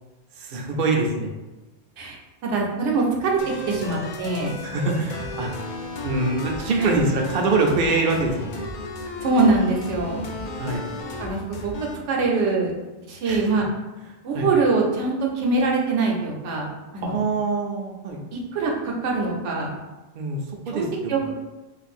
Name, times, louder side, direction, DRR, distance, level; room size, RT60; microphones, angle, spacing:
voice 1, 0.3-1.3 4.6-5.5 6.0-8.7 10.6-10.8 13.3-13.5 14.0-14.5 17.0-18.2 20.1-21.1, right 3 dB, 60° right, 1 dB, 0.6 m, -24 dB
voice 2, 2.4-4.6 6.8-6.9 9.2-10.2 11.2-12.7 13.1-13.7 14.2-17.2 18.3-19.7 20.7-20.8 21.1-21.3, right 3 dB, 80° right, -1 dB, 1.0 m, -23 dB
sound 1, 3.4-12.0, left 2 dB, 60° left, 0.5 m, -34 dB
2.5 x 2.5 x 4.2 m, 1.1 s
omnidirectional pair, 1.2 m